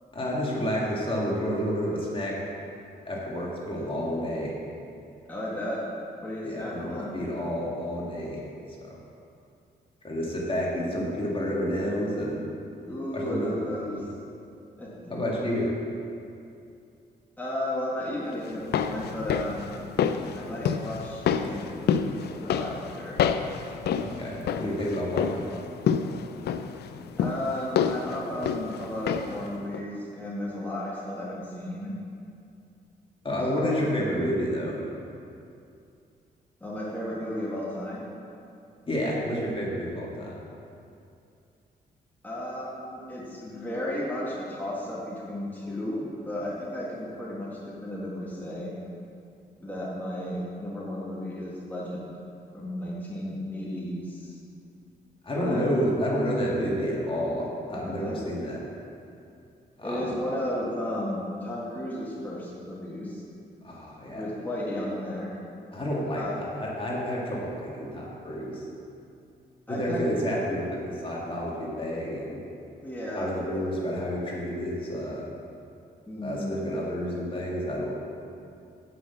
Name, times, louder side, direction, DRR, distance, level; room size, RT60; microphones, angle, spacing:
voice 1, 0.1-2.3 3.1-4.5 6.4-8.4 8.8-9.0 10.0-12.4 13.1-13.5 13.8-14.1 15.1-15.7 23.9-25.4 33.2-34.8 38.9-40.4 55.2-58.6 59.8-60.1 63.6-64.2 65.7-66.3 66.5-68.6 69.7-72.4 73.2-75.3 76.2-77.9, equal, 30° left, -4 dB, 2.1 m, -30 dB
voice 2, 5.3-5.8 6.2-7.1 12.8-14.0 14.8-15.1 17.4-19.7 20.3-23.2 27.2-31.9 33.5-34.1 36.6-38.0 42.2-48.7 49.6-52.0 52.5-54.4 55.3-55.6 57.7-58.2 59.8-63.2 64.1-65.3 66.1-66.3 69.7-70.1 72.8-73.6 76.1-76.5, left 1 dB, 10° left, -6 dB, 1.8 m, -34 dB
sound 1, 18.5-29.5 29.7-29.8, left 7 dB, 80° left, 0.4 m, -29 dB
8.1 x 6.0 x 6.9 m, 2.6 s
cardioid pair, 90°, 17 cm